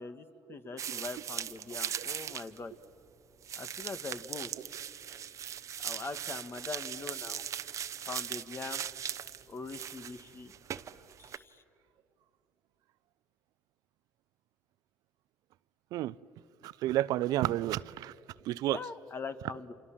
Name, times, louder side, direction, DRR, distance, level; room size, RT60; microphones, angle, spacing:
voice 1, 0.0-2.7 3.6-4.5 5.8-7.4 8.1-8.8 9.5-10.5 11.2-11.6 18.7-19.7, left 4 dB, 35° left, 1.7 m, -42 dB
sound 1, 0.8-2.6 2.8-2.9 3.4-11.4, right 9 dB, 50° right, 0.9 m, -39 dB
voice 2, 16.6-18.1 18.5-18.8, right 14 dB, 70° right, 0.6 m, -30 dB
28.5 x 27.5 x 7.4 m
supercardioid pair, 75°, 7 cm